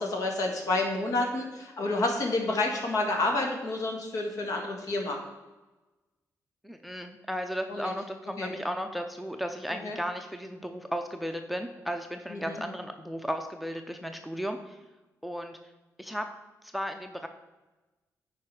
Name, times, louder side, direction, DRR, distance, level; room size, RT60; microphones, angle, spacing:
voice 1, 0.0-5.2 7.7-7.9 8.4-8.5 9.7-10.0 12.3-12.6, left 2 dB, 65° left, 1 dB, 1.8 m, -29 dB
voice 2, 6.6-14.8 15.2-15.6 16.0-16.3 16.6-17.3, equal, ahead, 6 dB, 0.6 m, -35 dB
9.4 x 5.0 x 4.8 m, 1.1 s
cardioid pair, 105°, 6 cm